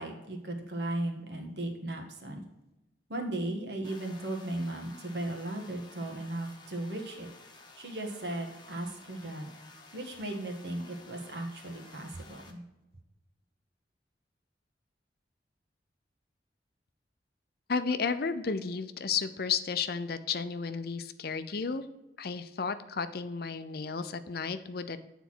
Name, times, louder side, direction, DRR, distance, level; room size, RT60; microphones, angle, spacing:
voice 1, 0.0-2.4 3.1-7.3 7.8-9.5 9.9-12.6, right 1 dB, 65° right, 3 dB, 1.6 m, -36 dB
sound 1, 3.8-12.5, left 3 dB, 25° left, 1.1 m, -53 dB
voice 2, 17.7-21.8 22.2-25.0, left 5 dB, 55° left, 11 dB, 0.6 m, -33 dB
9.3 x 4.1 x 6.0 m, 0.98 s
head